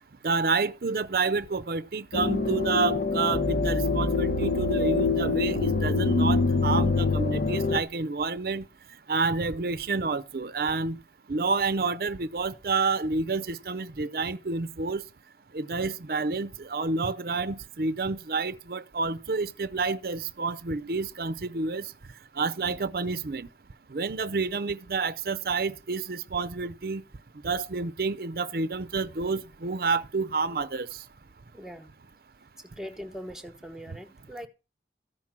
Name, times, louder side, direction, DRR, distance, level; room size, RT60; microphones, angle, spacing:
voice 1, 0.2-8.7 9.1-11.0 11.3-15.0 15.5-21.9 22.4-23.5 23.9-27.0 27.4-30.9, right 4 dB, 55° right, 0.6 m, -29 dB
sound 1, 2.1-7.8, left 3 dB, 60° left, 1.1 m, -25 dB
voice 2, 31.5-31.9 32.7-34.5, equal, 5° right, 1.0 m, -41 dB
14.0 x 6.0 x 7.3 m
head